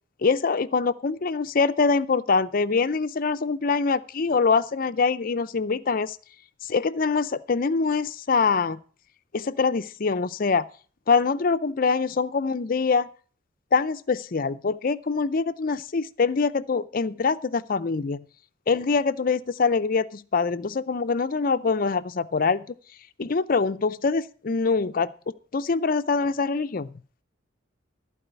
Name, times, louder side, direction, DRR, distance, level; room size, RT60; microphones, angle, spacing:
voice 1, 0.2-6.2 6.6-8.8 9.3-10.7 11.1-13.1 13.7-18.2 18.7-22.6 23.2-25.1 25.5-27.0, left 4 dB, 45° left, 12 dB, 0.5 m, -24 dB
14.5 x 4.8 x 8.1 m, 0.42 s
head